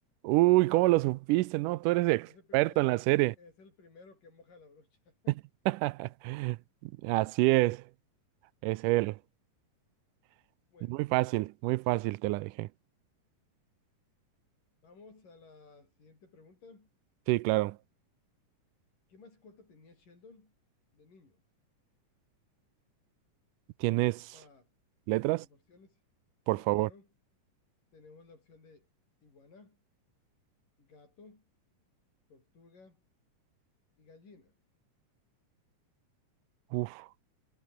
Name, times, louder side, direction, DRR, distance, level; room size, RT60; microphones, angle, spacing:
voice 1, 0.2-2.3 2.5-3.4 5.7-6.6 7.0-7.8 8.6-9.2 10.9-12.7 17.3-17.8 23.8-24.3 25.1-25.5 26.5-26.9 36.7-37.1, right 20 dB, 90° right, 2.2 m, -27 dB
voice 2, 2.3-3.1 3.4-5.4 10.7-11.0 14.8-16.9 19.1-20.5 20.9-21.4 24.3-24.7 25.3-26.0 26.6-27.1 27.9-28.9 29.2-29.8 30.8-31.4 32.3-33.0 34.0-34.5, left 4 dB, 90° left, 9.3 m, -57 dB
omnidirectional pair, 3.7 m